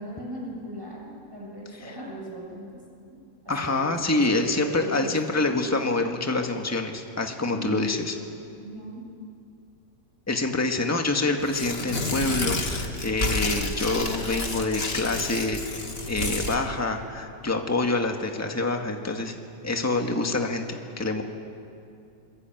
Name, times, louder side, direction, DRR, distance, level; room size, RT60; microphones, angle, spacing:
voice 1, 0.0-2.7 3.4-5.2 5.6-5.7 7.4-7.9 8.6-9.0, equal, 10° right, -3 dB, 7.6 m, -38 dB
voice 2, 3.5-8.1 10.3-19.3 19.6-21.2, left 2 dB, 10° left, 3 dB, 1.7 m, -26 dB
Tearing, 11.4-16.6, left 2 dB, 35° left, 2.3 m, -30 dB
26.0 x 23.0 x 9.2 m, 2.5 s
omnidirectional pair, 1.9 m